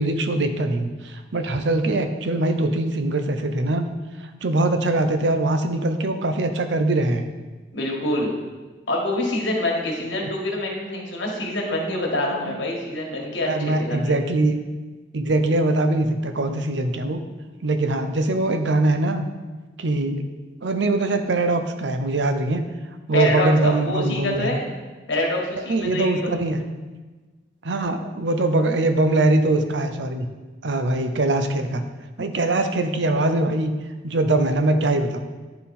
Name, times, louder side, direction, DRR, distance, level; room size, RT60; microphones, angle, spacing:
voice 1, 0.0-3.9 4.2-7.2 10.2-10.3 12.5-12.6 13.4-14.6 15.1-17.2 17.6-19.2 19.8-20.3 20.6-22.7 23.1-24.6 25.7-26.6 27.6-30.3 30.6-31.8 32.2-33.7 34.0-35.2, right 2 dB, 80° right, 8 dB, 0.6 m, -22 dB
voice 2, 7.7-8.3 8.9-14.1 23.1-24.7 25.1-26.4, left 1 dB, 90° left, -1 dB, 1.6 m, -26 dB
10.5 x 3.9 x 4.2 m, 1.3 s
head